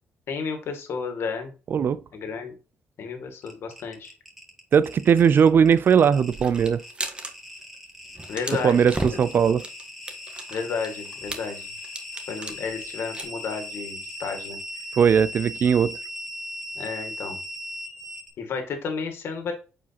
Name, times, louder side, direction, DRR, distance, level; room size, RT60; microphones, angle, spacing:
voice 1, 0.3-1.5 2.1-2.6 3.0-4.1 8.3-8.8 9.1-9.2 10.5-11.7 12.3-14.6 16.8-17.4 18.4-19.5, left 5 dB, 65° left, 2.0 m, -32 dB
sound 1, 3.4-18.3, equal, 5° right, 2.4 m, -39 dB
voice 2, 4.7-6.8 8.6-9.6 15.0-16.0, right 7 dB, 55° right, 0.4 m, -19 dB
sound 2, 6.3-7.3 7.6-7.8 8.1-13.2, right 2 dB, 25° right, 1.4 m, -35 dB
8.2 x 5.0 x 2.9 m
cardioid pair, 75°, 4 cm